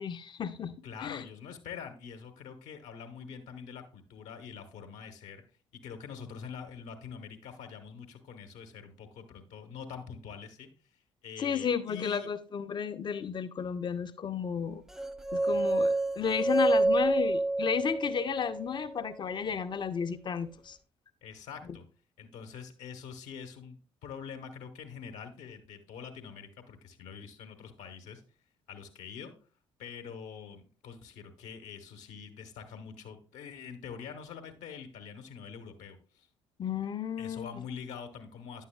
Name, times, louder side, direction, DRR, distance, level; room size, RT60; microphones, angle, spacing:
voice 1, 0.0-0.7 1.0-1.2 11.4-14.8 15.3-20.8 36.6-37.5, left 7 dB, 35° left, 0.7 m, -33 dB
voice 2, 0.8-5.4 5.7-10.7 11.2-12.3 21.2-21.8 22.2-28.2 28.7-29.3 29.8-36.3 37.2-38.6, left 6 dB, 55° left, 1.0 m, -45 dB
sound 1, 15.0-19.1, right 2 dB, 5° right, 0.5 m, -28 dB
9.8 x 7.3 x 2.2 m
figure-of-eight pair, 45°, 14 cm